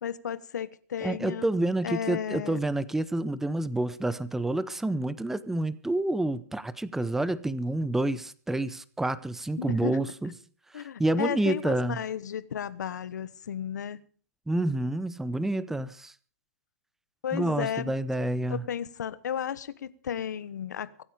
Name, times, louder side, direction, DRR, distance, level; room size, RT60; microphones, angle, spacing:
voice 1, 0.0-1.5 1.8-2.6 9.6-10.0 10.7-14.0 17.2-17.9 18.5-21.0, left 9 dB, 75° left, 1.3 m, -33 dB
voice 2, 1.0-10.3 10.7-12.0 14.5-16.1 17.3-18.6, right 2 dB, 5° right, 0.8 m, -28 dB
24.0 x 9.3 x 5.2 m
hypercardioid pair, 130°, 10 cm